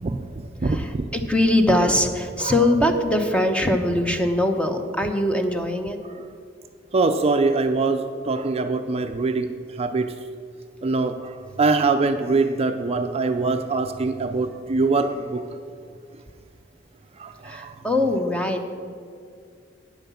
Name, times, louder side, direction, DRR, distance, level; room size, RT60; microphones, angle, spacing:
voice 1, 0.0-1.0 2.4-2.7 6.0-6.3 6.9-10.3 10.8-15.6 17.1-17.8, right 3 dB, 30° right, 7 dB, 0.4 m, -24 dB
voice 2, 1.1-6.0 17.4-18.7, left 1 dB, 5° left, 5 dB, 0.8 m, -22 dB
9.3 x 7.8 x 7.0 m, 2.3 s
head